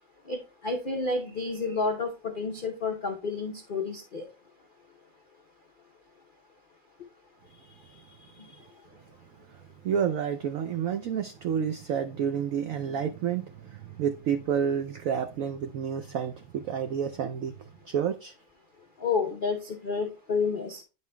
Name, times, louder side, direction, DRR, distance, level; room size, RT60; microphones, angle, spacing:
voice 1, 0.3-4.3 19.0-20.8, left 4 dB, 80° left, 0.4 m, -30 dB
voice 2, 7.5-8.7 9.5-18.3, right 8 dB, 90° right, 0.7 m, -30 dB
9.3 x 5.5 x 2.2 m
omnidirectional pair, 2.0 m